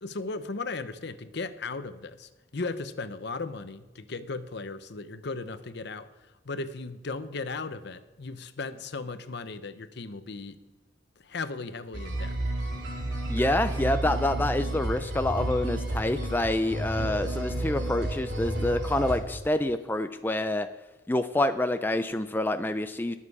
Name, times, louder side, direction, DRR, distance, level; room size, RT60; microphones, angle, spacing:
voice 1, 0.0-6.1 6.5-10.6 11.2-12.4, left 3 dB, 60° left, 11 dB, 0.8 m, -36 dB
sound 1, 11.9-19.2, right 1 dB, 60° right, 3.0 m, -31 dB
voice 2, 13.3-20.7 21.1-23.2, left 1 dB, 10° left, 9 dB, 0.4 m, -27 dB
20.5 x 7.5 x 4.8 m, 1.2 s
head